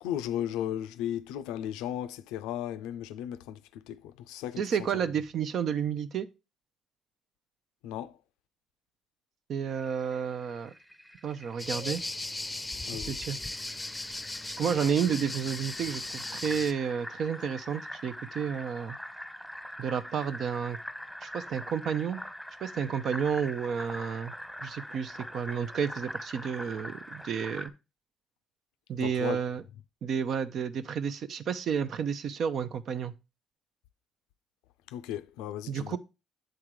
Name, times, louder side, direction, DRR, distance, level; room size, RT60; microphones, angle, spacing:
voice 1, 0.0-4.6 7.8-8.1 12.9-13.2 29.0-29.4 34.9-36.0, left 11 dB, 85° left, 0.4 m, -35 dB
voice 2, 4.6-6.3 9.5-10.7 11.2-12.0 13.0-13.4 14.6-19.0 19.8-20.8 21.2-22.2 22.6-24.3 24.6-27.7 28.9-29.6 30.0-33.1 35.7-36.0, right 7 dB, 65° right, 0.6 m, -31 dB
Fill (with liquid), 9.7-27.7, equal, 5° right, 1.3 m, -44 dB
sound 1, 11.6-16.7, left 2 dB, 15° left, 0.6 m, -37 dB
7.7 x 3.6 x 4.6 m
supercardioid pair, 55°, 0 cm